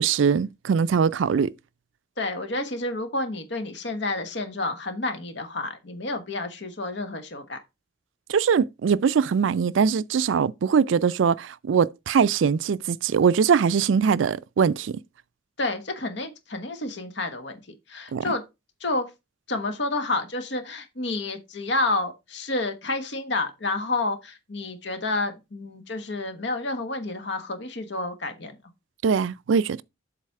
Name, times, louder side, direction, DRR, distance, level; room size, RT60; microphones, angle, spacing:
voice 1, 0.0-1.5 8.3-15.0 18.1-18.2 29.0-29.8, right 6 dB, 85° right, 0.4 m, -22 dB
voice 2, 2.2-7.6 15.6-17.6 17.9-18.4 18.8-19.1 19.5-28.6, left 2 dB, 65° left, 1.3 m, -29 dB
7.5 x 4.0 x 4.6 m
head